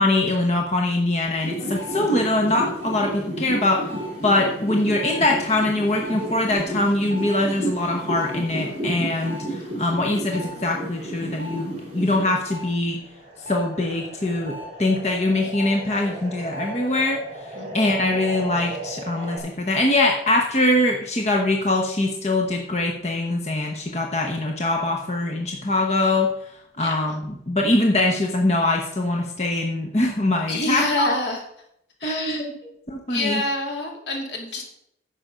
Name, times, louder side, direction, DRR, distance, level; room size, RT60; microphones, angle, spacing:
voice 1, 0.0-3.9 4.2-13.0 13.5-17.2 17.7-26.3 26.8-31.1 32.0-32.5 32.9-33.4, left 2 dB, 35° left, 2 dB, 0.9 m, -23 dB
sound 1, 1.4-12.7 13.0-19.4, right 1 dB, 35° right, 2.5 m, -33 dB
voice 2, 30.5-31.4 32.0-32.4 33.1-34.6, left 1 dB, 75° left, 1 dB, 2.6 m, -27 dB
10.0 x 6.7 x 5.0 m, 0.76 s
head